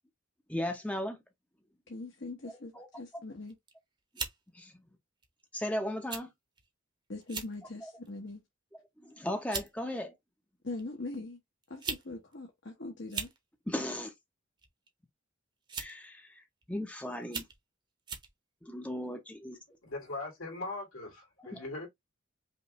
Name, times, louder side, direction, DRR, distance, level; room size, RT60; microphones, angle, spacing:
voice 1, 0.5-1.2 2.7-2.9 4.5-4.7 5.5-6.3 7.8-7.9 9.0-10.1 13.7-14.1 15.8-17.4 18.6-19.6 21.4-21.6, left 1 dB, 5° left, 0.7 m, -36 dB
voice 2, 1.9-3.6 7.1-8.4 10.6-11.4 11.7-13.3, left 2 dB, 55° left, 1.1 m, -41 dB
sound 1, 3.5-3.7 4.2-4.4 5.2-5.4 6.1-6.3 6.6-6.7 7.2-7.5 8.1-8.3 9.1-9.2 9.5-9.7 10.8-10.9 11.6-12.1 12.3-12.4 13.0-13.4 14.6-14.9 15.7-16.0 16.6-16.7 17.2-17.6 18.1-18.3, right 5 dB, 20° right, 0.9 m, -38 dB
voice 3, 19.8-21.9, left 2 dB, 75° left, 2.6 m, -40 dB
5.5 x 2.5 x 3.0 m
head